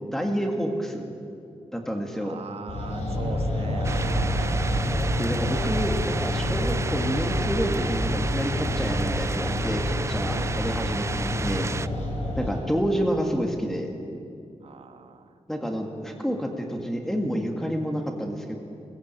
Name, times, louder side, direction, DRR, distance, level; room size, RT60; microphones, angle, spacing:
voice 1, 0.1-1.1 1.7-2.4 5.2-11.7 12.4-13.9 15.5-18.6, equal, 5° left, 2 dB, 1.8 m, -29 dB
voice 2, 2.2-4.6 10.3-10.6 11.9-12.1 14.6-15.4 16.1-16.2, right 5 dB, 70° right, 8 dB, 1.4 m, -40 dB
sound 1, 2.7-12.6, left 1 dB, 85° left, 5.0 m, -28 dB
sound 2, 3.8-11.9, right 4 dB, 25° right, 0.4 m, -32 dB
19.5 x 15.0 x 8.9 m, 2.5 s
wide cardioid pair, 155°, 11 cm